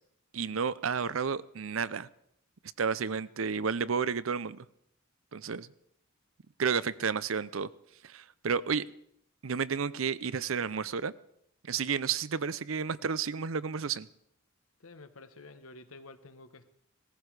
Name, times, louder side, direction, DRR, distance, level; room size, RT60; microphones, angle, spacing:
voice 1, 0.3-2.1 2.8-4.6 5.3-5.7 6.6-7.7 8.0-8.8 9.4-11.1 11.6-14.1, right 6 dB, 75° right, 18 dB, 0.6 m, -31 dB
voice 2, 14.8-16.7, left 2 dB, 85° left, 9 dB, 1.3 m, -50 dB
18.5 x 15.0 x 4.9 m, 0.73 s
head